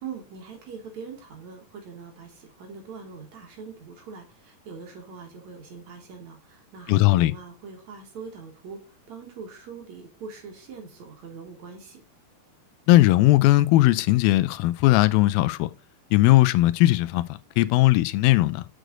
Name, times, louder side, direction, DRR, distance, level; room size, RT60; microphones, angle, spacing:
voice 1, 0.0-12.0, right 5 dB, 55° right, 2.7 m, -42 dB
voice 2, 6.9-7.3 12.9-15.7 16.1-18.7, left 17 dB, 80° left, 2.3 m, -19 dB
6.6 x 6.4 x 3.8 m
omnidirectional pair, 4.3 m